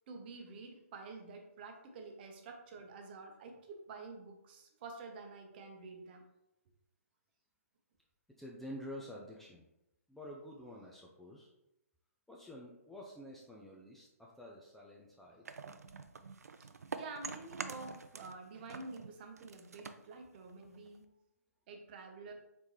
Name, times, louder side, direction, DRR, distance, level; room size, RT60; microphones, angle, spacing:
voice 1, 0.1-6.3 17.0-21.0 21.7-22.3, right 3 dB, 40° right, 3 dB, 0.7 m, -49 dB
voice 2, 8.3-9.7 10.1-11.5 12.3-15.5 20.7-20.8, equal, 5° left, -3 dB, 0.4 m, -49 dB
sound 1, 15.4-18.4 18.7-21.0, right 5 dB, 80° right, 0.4 m, -46 dB
4.2 x 3.5 x 3.0 m, 0.88 s
figure-of-eight pair, 130°, 8 cm